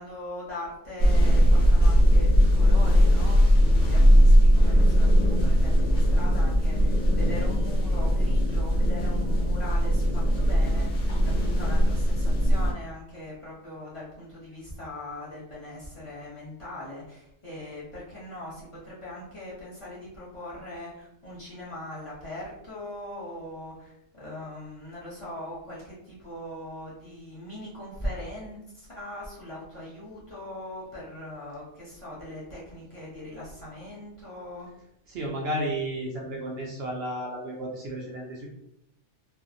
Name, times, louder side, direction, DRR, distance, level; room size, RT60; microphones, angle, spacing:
voice 1, 0.0-10.9 11.2-34.7, left 1 dB, 30° left, -9 dB, 1.1 m, -40 dB
sound 1, 1.0-12.7, equal, 85° left, 1.0 m, -20 dB
voice 2, 35.1-38.5, right 1 dB, 65° right, -2 dB, 0.7 m, -32 dB
2.5 x 2.4 x 2.6 m, 0.79 s
omnidirectional pair, 1.2 m